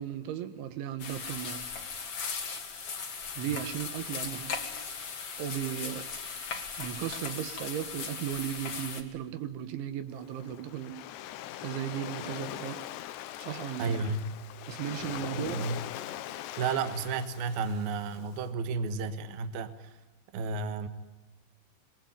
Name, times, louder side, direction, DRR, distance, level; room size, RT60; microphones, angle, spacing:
voice 1, 0.0-1.6 3.4-4.6 5.4-6.1 6.8-11.0 11.6-12.8 13.4-13.9 14.7-15.7, right 11 dB, 80° right, 10 dB, 3.8 m, -36 dB
sound 1, 1.0-9.0, left 5 dB, 40° left, 2.6 m, -38 dB
Waves surf, 10.1-18.4, left 13 dB, 75° left, 3.0 m, -41 dB
voice 2, 13.8-14.3 15.3-15.9 16.6-19.9 20.3-20.9, right 4 dB, 65° right, 10 dB, 2.9 m, -32 dB
27.0 x 22.0 x 9.2 m, 1.1 s
omnidirectional pair, 5.4 m